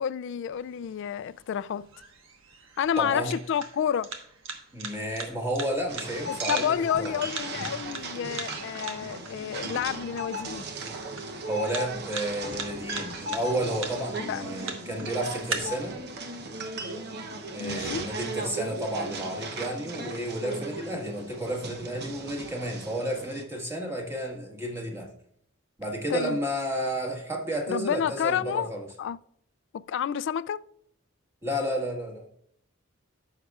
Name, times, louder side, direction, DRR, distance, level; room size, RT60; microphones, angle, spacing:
voice 1, 0.0-1.9 2.8-4.1 6.3-10.7 14.3-14.4 17.6-18.0 26.1-26.4 27.7-28.7 29.0-29.2 29.9-30.6, left 8 dB, 65° left, 0.3 m, -29 dB
sound 1, 0.5-15.5, right 4 dB, 80° right, 1.3 m, -42 dB
voice 2, 3.0-3.3 4.7-7.2 11.5-16.0 17.5-25.1 25.8-28.9 31.4-32.3, right 1 dB, 15° right, 1.6 m, -32 dB
sound 2, 5.9-23.4, right 2 dB, 55° right, 0.9 m, -37 dB
14.5 x 6.4 x 2.4 m
head